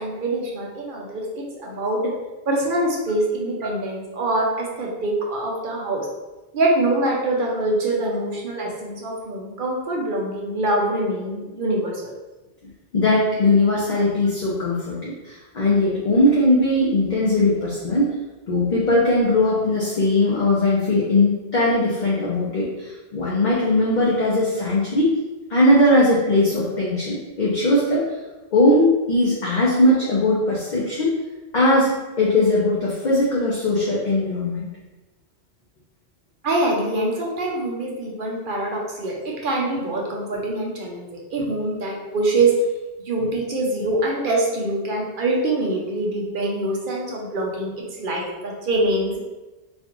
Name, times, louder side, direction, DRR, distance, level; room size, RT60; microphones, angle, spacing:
voice 1, 0.0-2.0 2.5-6.0 6.5-12.1 36.4-42.5 43.1-47.7 48.0-49.1, right 2 dB, 55° right, -2 dB, 0.8 m, -24 dB
voice 2, 12.9-18.1 18.5-25.1 25.5-28.1 28.5-31.1 31.5-34.7, left 1 dB, 50° left, -6 dB, 0.8 m, -19 dB
4.1 x 2.4 x 2.9 m, 1.1 s
omnidirectional pair, 1.1 m